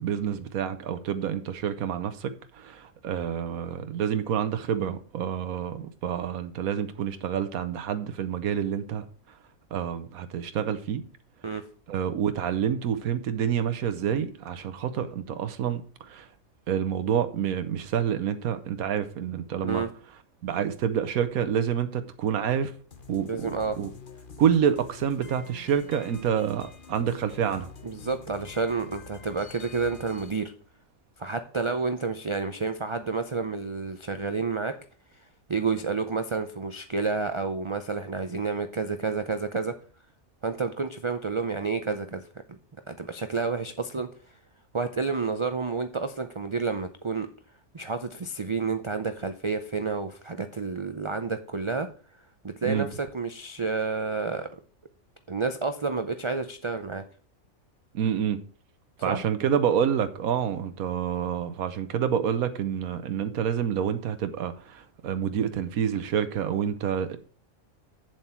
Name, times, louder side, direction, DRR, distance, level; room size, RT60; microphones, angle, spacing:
voice 1, 0.0-9.0 9.7-11.0 11.9-16.3 16.7-19.8 20.4-22.7 23.1-23.9 24.4-27.7 52.6-52.9 57.9-58.4 59.0-67.2, right 8 dB, 90° right, 1.3 m, -28 dB
sound 1, 22.9-30.3, left 5 dB, 40° left, 1.0 m, -47 dB
voice 2, 23.3-23.8 27.8-30.5 31.2-34.8 35.5-39.7 40.4-42.6 42.9-44.1 44.7-47.3 47.7-51.9 52.4-54.6 55.3-57.0 59.1-59.2, right 4 dB, 40° right, 0.4 m, -30 dB
8.2 x 7.5 x 4.4 m
omnidirectional pair, 1.5 m